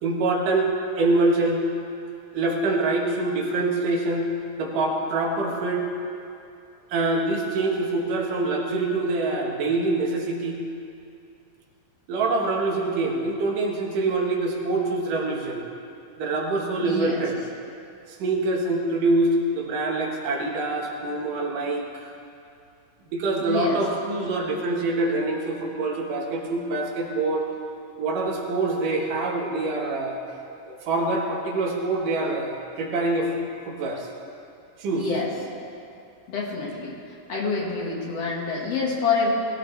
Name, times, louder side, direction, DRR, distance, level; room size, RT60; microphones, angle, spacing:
voice 1, 0.0-0.7 1.0-1.6 2.3-4.3 4.6-5.9 6.9-10.6 12.1-15.6 16.2-17.4 18.1-22.1 23.1-27.4 28.0-30.2 30.7-33.3 33.6-34.1 34.8-35.1, right 2 dB, 80° right, 0 dB, 3.1 m, -25 dB
voice 2, 16.8-17.2 21.2-21.3 23.4-23.8 34.9-35.3 36.3-37.0 37.3-39.3, left 4 dB, 55° left, -3 dB, 2.7 m, -27 dB
20.0 x 15.5 x 3.3 m, 2.6 s
omnidirectional pair, 3.7 m